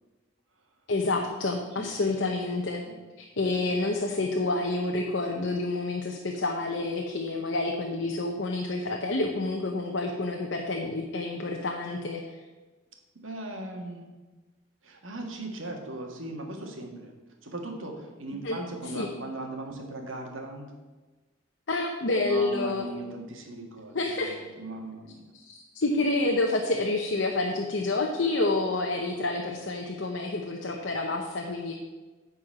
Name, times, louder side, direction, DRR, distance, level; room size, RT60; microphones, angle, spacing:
voice 1, 0.9-2.8 3.2-12.4 18.3-18.6 18.9-19.1 21.7-22.9 23.9-24.4 25.3-31.7, left 2 dB, 60° left, 1 dB, 0.8 m, -28 dB
voice 2, 1.8-2.1 2.9-3.0 13.2-14.1 14.8-17.1 17.4-20.7 22.2-25.2, right 2 dB, 80° right, 2 dB, 1.7 m, -38 dB
9.9 x 4.5 x 7.5 m, 1.2 s
head